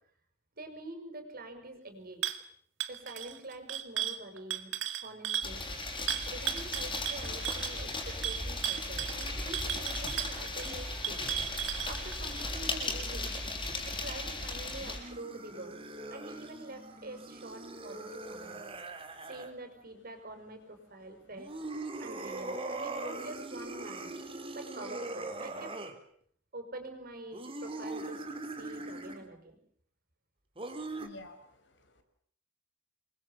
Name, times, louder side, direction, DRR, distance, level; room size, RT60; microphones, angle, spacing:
voice 1, 0.5-2.3 2.9-4.7 5.0-5.6 6.3-11.2 11.9-13.3 13.8-15.8 16.1-18.6 19.3-21.5 22.0-24.1 24.5-25.7 26.5-29.6, right 2 dB, 50° right, 7 dB, 6.5 m, -46 dB
sound 1, 2.2-2.4 2.8-5.5 6.1-12.4, right 11 dB, 80° right, 2.2 m, -35 dB
sound 2, 5.4-15.0, left 2 dB, 25° left, 6.8 m, -36 dB
sound 3, 14.7-19.5 21.3-25.9 27.3-29.3 30.6-31.1, right 2 dB, 30° right, 3.7 m, -41 dB
voice 2, 30.8-32.0, left 1 dB, 65° left, 8 dB, 5.3 m, -52 dB
28.0 x 23.0 x 7.4 m, 0.62 s
head